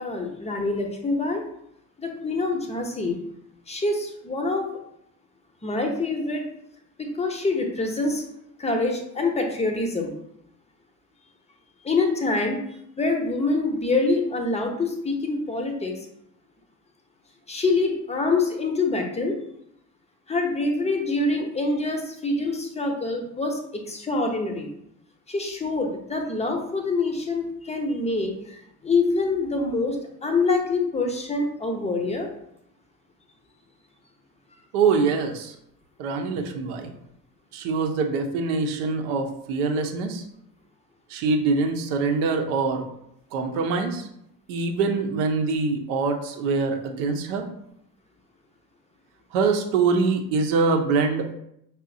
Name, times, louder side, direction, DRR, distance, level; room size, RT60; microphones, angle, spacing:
voice 1, 0.0-1.4 2.0-3.2 3.7-4.7 5.6-6.4 7.0-8.2 8.6-10.1 11.8-12.6 13.0-16.0 17.5-19.3 20.3-24.7 25.3-32.3, left 3 dB, 15° left, 3 dB, 0.7 m, -25 dB
voice 2, 34.7-35.5 36.0-36.9 37.5-40.3 41.1-42.8 43.3-44.1 44.5-47.5 49.3-51.3, right 4 dB, 65° right, 3 dB, 0.8 m, -24 dB
5.4 x 2.0 x 2.6 m, 0.76 s
hypercardioid pair, 65°, 48 cm